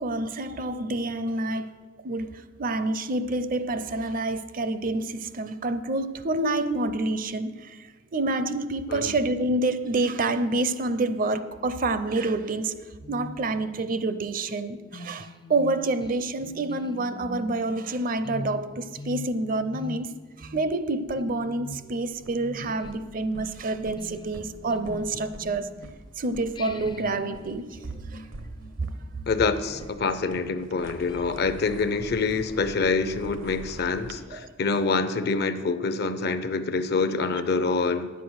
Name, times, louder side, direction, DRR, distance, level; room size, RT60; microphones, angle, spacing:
voice 1, 0.0-1.7 2.0-12.7 13.1-20.1 20.4-25.8 26.2-27.8 28.1-28.2 34.3-34.4, right 2 dB, 45° right, 0.5 m, -28 dB
sound 1, 13.0-26.1 26.6-32.5, left 1 dB, 25° left, 0.4 m, -44 dB
sound 2, 22.0-34.2, right 1 dB, 75° right, 0.8 m, -45 dB
voice 2, 29.3-38.1, left 4 dB, 55° left, 0.6 m, -26 dB
9.6 x 8.3 x 6.3 m
head